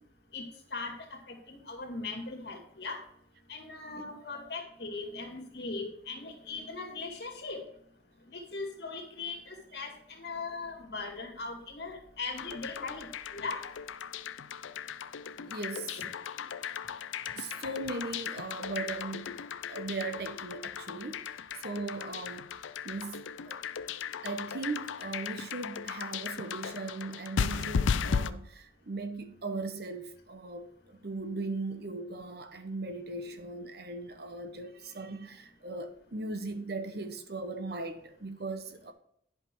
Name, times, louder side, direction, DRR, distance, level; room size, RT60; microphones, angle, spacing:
voice 1, 1.3-3.0 3.5-7.6 8.3-13.6 16.0-16.1, left 3 dB, 60° left, 2.2 m, -39 dB
sound 1, 12.4-28.3, left 6 dB, 90° left, 0.5 m, -36 dB
voice 2, 15.4-16.0 16.4-16.5 17.3-19.4 19.7-21.3 21.5-22.5 22.8-23.6 24.2-38.9, right 3 dB, 55° right, 0.9 m, -38 dB
11.0 x 5.9 x 4.6 m
head